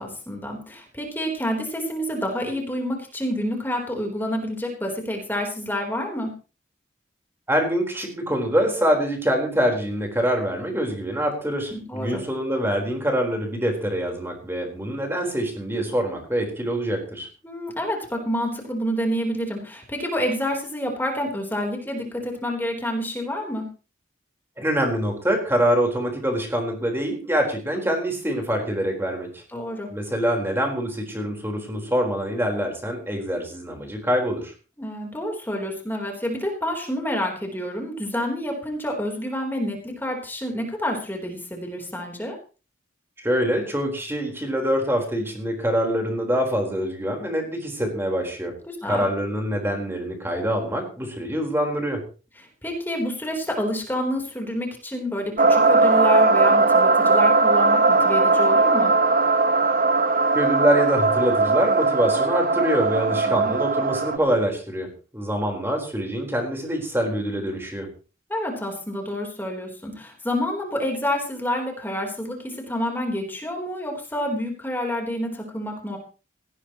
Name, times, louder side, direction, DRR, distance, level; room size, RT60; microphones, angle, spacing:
voice 1, 0.0-6.3 11.7-12.2 17.4-23.7 29.5-29.9 34.8-42.4 48.7-49.1 52.4-58.9 63.3-63.5 68.3-76.0, equal, 10° left, 1 dB, 3.7 m, -28 dB
voice 2, 7.5-17.3 24.6-29.4 29.9-34.5 43.2-48.5 48.8-52.0 60.3-67.9, equal, 10° right, 2 dB, 4.2 m, -25 dB
sound 1, 55.4-64.2, right 3 dB, 45° right, 0.9 m, -19 dB
18.0 x 16.5 x 3.1 m, 0.35 s
head